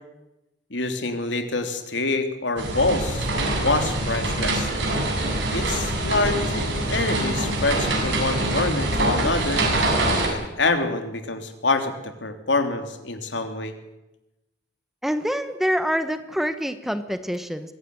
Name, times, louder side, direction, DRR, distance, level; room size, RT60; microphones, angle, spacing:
voice 1, 0.7-3.3 3.6-4.7 5.5-9.6 10.3-13.7, left 3 dB, 80° left, 6 dB, 3.3 m, -26 dB
sound 1, 2.6-10.3, right 1 dB, 80° right, 7.6 m, -24 dB
voice 2, 15.0-17.7, equal, ahead, 10 dB, 1.2 m, -26 dB
23.5 x 17.0 x 9.7 m, 0.97 s
head